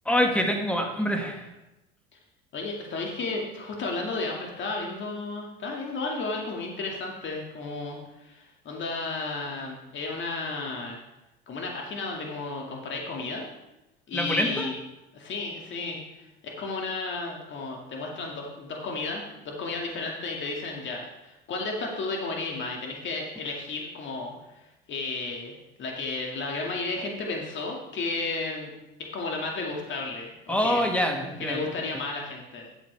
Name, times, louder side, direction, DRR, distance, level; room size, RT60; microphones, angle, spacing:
voice 1, 0.1-1.5 14.1-14.7 30.5-31.7, equal, 5° left, 2 dB, 1.8 m, -25 dB
voice 2, 2.5-11.0 11.5-13.5 14.1-14.7 15.1-28.7 29.0-30.8 31.2-32.7, left 3 dB, 40° left, 0 dB, 2.2 m, -33 dB
12.5 x 7.7 x 3.4 m, 0.95 s
hypercardioid pair, 70°, 29 cm